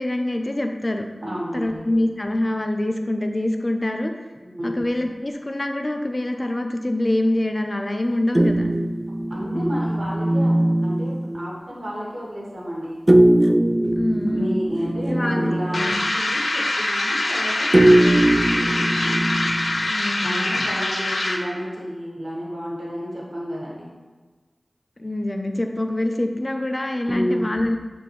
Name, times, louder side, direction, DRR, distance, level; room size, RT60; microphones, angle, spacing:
voice 1, 0.0-1.1 1.5-4.1 4.6-8.7 14.0-14.6 15.1-16.0 19.8-20.8 25.0-27.8, left 1 dB, 40° left, 4 dB, 0.7 m, -25 dB
voice 2, 1.2-1.9 4.4-4.7 9.3-13.0 14.3-18.7 20.2-23.9 27.1-27.5, equal, 75° right, -5 dB, 2.0 m, -31 dB
sound 1, 8.3-11.5 13.1-16.0 17.7-19.9, right 1 dB, 30° right, 0.4 m, -20 dB
sound 2, 15.7-21.5, left 2 dB, 80° left, 0.7 m, -24 dB
9.6 x 4.5 x 3.2 m, 1.4 s
wide cardioid pair, 45°, 0 cm